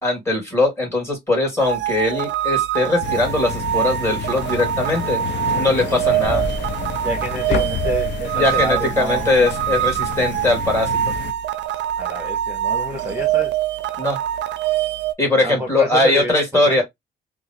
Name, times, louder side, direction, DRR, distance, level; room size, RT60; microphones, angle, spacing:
voice 1, 0.0-5.2 5.6-6.5 8.3-10.9 14.0-14.2 15.2-16.8, left 2 dB, 15° left, 2.5 m, -20 dB
sound 1, 1.6-15.1, right 12 dB, 65° right, 0.4 m, -24 dB
sound 2, 3.0-11.3, left 9 dB, 65° left, 0.5 m, -30 dB
sound 3, 6.2-12.4, left 1 dB, 35° left, 1.1 m, -35 dB
voice 2, 7.0-9.3 12.0-13.5 15.4-16.8, equal, 15° right, 1.0 m, -28 dB
3.6 x 2.4 x 3.0 m
cardioid pair, 90°, 20 cm